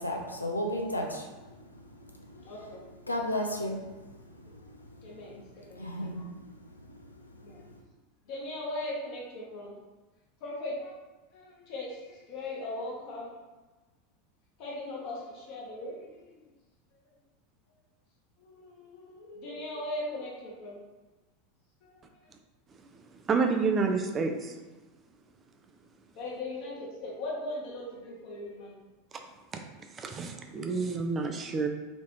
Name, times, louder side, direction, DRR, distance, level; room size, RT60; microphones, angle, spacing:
voice 1, 0.0-2.7 3.1-7.8, left 1 dB, 85° left, 1 dB, 0.5 m, -36 dB
voice 2, 2.4-3.0 5.0-5.4 5.7-6.2 7.4-7.6 8.2-9.8 10.4-10.9 11.3-13.3 14.6-16.4 18.4-20.8 21.8-21.9 26.1-28.7, left 1 dB, 50° left, -4 dB, 1.2 m, -39 dB
voice 3, 23.2-24.6 29.9-31.7, right 4 dB, 30° right, 5 dB, 0.5 m, -29 dB
4.2 x 3.0 x 3.1 m, 1.2 s
figure-of-eight pair, 80°, 0 cm